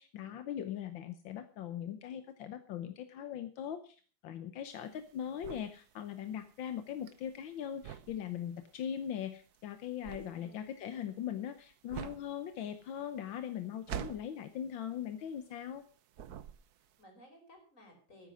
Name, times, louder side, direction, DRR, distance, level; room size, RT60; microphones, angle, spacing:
voice 1, 0.0-15.8, left 9 dB, 85° left, 9 dB, 1.7 m, -40 dB
sound 1, 4.7-15.9 16.1-17.0, right 9 dB, 65° right, 1.2 m, -47 dB
voice 2, 16.8-18.3, equal, 40° left, 2 dB, 5.5 m, -59 dB
13.5 x 9.9 x 6.3 m, 0.41 s
omnidirectional pair, 2.1 m